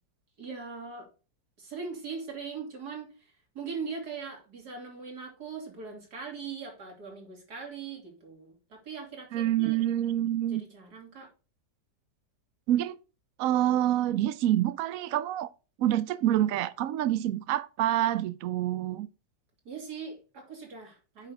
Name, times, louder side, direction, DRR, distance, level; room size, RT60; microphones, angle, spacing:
voice 1, 0.4-1.1 1.6-9.8 10.5-11.3 19.7-21.3, right 5 dB, 55° right, 3.4 m, -40 dB
voice 2, 9.3-10.6 12.7-13.0 13.4-15.5 15.8-19.1, right 12 dB, 80° right, 0.7 m, -27 dB
8.7 x 6.1 x 3.5 m
omnidirectional pair, 2.0 m